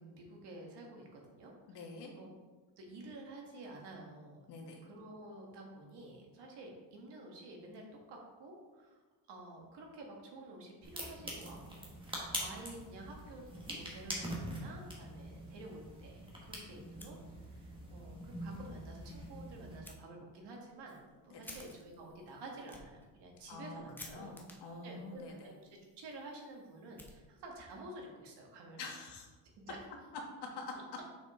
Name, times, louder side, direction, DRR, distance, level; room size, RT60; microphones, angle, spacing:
voice 1, 0.0-1.8 2.2-2.3 2.8-4.4 4.8-9.0 9.3-13.4 13.7-17.2 17.4-24.4 24.8-25.5 26.0-28.8 29.7-29.8 30.7-30.8, right 2 dB, 70° right, 0 dB, 1.6 m, -50 dB
voice 2, 1.7-2.1 4.5-4.8 12.3-12.4 21.3-21.6 23.5-25.5 28.8-29.3 30.6-30.7, left 3 dB, 70° left, 1 dB, 1.4 m, -47 dB
sound 1, 10.8-19.8, right 1 dB, 10° right, 1.4 m, -44 dB
Fire, 17.0-17.8 18.1-18.2 18.6-18.7 19.8-20.0 20.5-27.7, left 1 dB, 5° left, 0.7 m, -56 dB
6.1 x 5.0 x 3.7 m, 1.3 s
cardioid pair, 140°, 42 cm